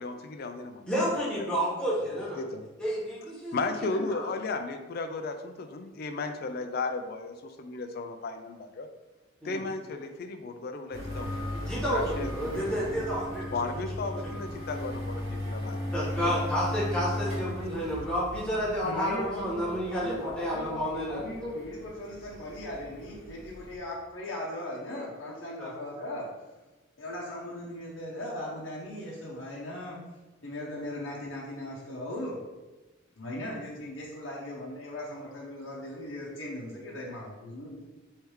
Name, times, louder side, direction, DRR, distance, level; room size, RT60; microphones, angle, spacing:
voice 1, 0.0-1.5 2.4-2.7 3.5-8.9 9.4-11.5 11.9-13.0 13.5-16.0 16.2-16.3 17.3-17.5, left 3 dB, 50° left, 7 dB, 0.4 m, -35 dB
voice 2, 0.9-2.4 2.8-4.3 9.4-9.6 11.5-13.8 15.9-21.3 25.6-25.7, equal, 5° left, -8 dB, 1.3 m, -31 dB
sound 1, 10.9-23.8, left 1 dB, 80° right, 1.5 m, -37 dB
voice 3, 18.8-26.3 27.0-30.0 30.4-32.4 33.1-37.8, left 1 dB, 65° left, -5 dB, 0.8 m, -38 dB
3.2 x 3.2 x 4.7 m, 1.1 s
head